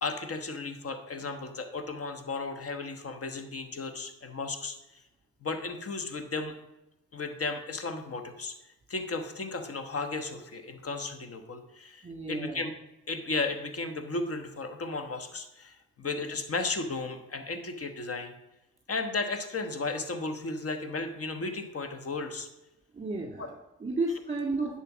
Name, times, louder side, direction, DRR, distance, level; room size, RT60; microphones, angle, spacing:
voice 1, 0.0-4.8 5.4-6.5 7.1-8.6 8.9-12.7 13.1-18.3 18.9-22.5, left 3 dB, 45° left, 8 dB, 1.3 m, -34 dB
voice 2, 12.0-12.6 16.0-16.2 22.9-24.8, right 2 dB, 20° right, -1 dB, 2.1 m, -33 dB
11.0 x 4.5 x 6.2 m, 0.95 s
supercardioid pair, 50°, 32 cm